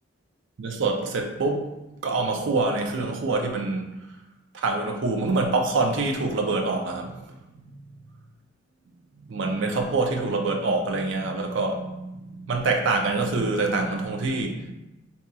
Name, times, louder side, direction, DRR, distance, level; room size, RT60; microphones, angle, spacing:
voice 1, 0.6-1.7 2.0-3.9 4.5-7.1 9.3-14.7, right 3 dB, 70° right, 3 dB, 0.5 m, -25 dB
2.8 x 2.3 x 3.9 m, 0.95 s
head